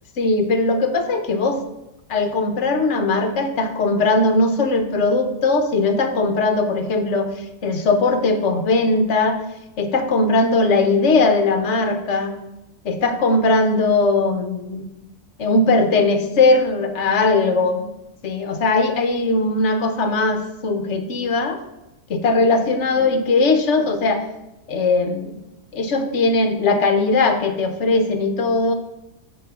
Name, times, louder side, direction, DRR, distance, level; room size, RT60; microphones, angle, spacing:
voice 1, 0.2-1.6 2.1-7.3 7.6-9.4 9.8-12.4 12.8-14.8 15.4-17.9 18.2-21.6 22.1-24.2 24.7-25.3 25.7-28.7, left 3 dB, 55° left, 7 dB, 1.1 m, -19 dB
9.4 x 3.2 x 6.0 m, 0.92 s
omnidirectional pair, 1.6 m